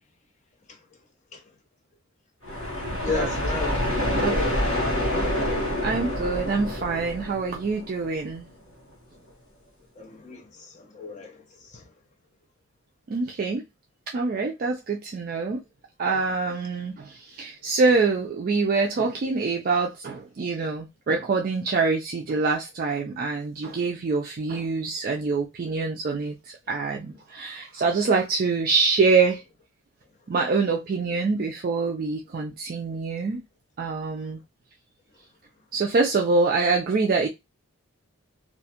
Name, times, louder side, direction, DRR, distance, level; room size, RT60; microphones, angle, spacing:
sound 1, 2.4-8.2, left 1 dB, 75° left, 1.1 m, -27 dB
voice 1, 3.0-4.1 10.0-11.9, left 5 dB, 35° left, 0.5 m, -35 dB
voice 2, 5.8-8.5 13.1-13.6 14.1-15.6 16.0-26.4 26.7-29.4 30.3-33.4 33.8-34.4 35.7-37.3, right 4 dB, 40° right, 0.3 m, -25 dB
2.4 x 2.3 x 2.7 m
head